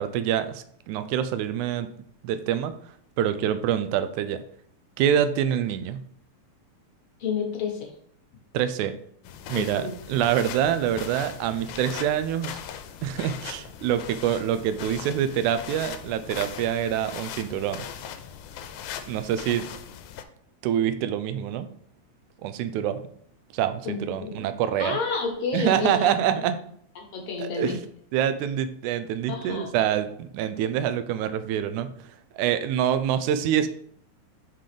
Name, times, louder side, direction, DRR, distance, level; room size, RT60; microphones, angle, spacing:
voice 1, 0.0-1.9 2.2-2.7 3.2-4.4 5.0-6.0 8.5-9.0 9.5-12.6 13.0-17.9 19.1-19.7 20.6-21.7 22.4-23.0 23.5-25.0 25.5-26.6 27.4-27.9 28.1-31.9 32.3-33.7, right 10 dB, 85° right, 11 dB, 2.0 m, -26 dB
voice 2, 7.2-7.9 9.5-9.9 23.8-24.5 24.8-26.1 26.9-27.7 29.3-29.7, left 5 dB, 55° left, 1 dB, 1.6 m, -30 dB
sound 1, 9.2-20.2, left 9 dB, 85° left, 2.0 m, -39 dB
5.8 x 3.7 x 5.0 m, 0.64 s
omnidirectional pair, 3.4 m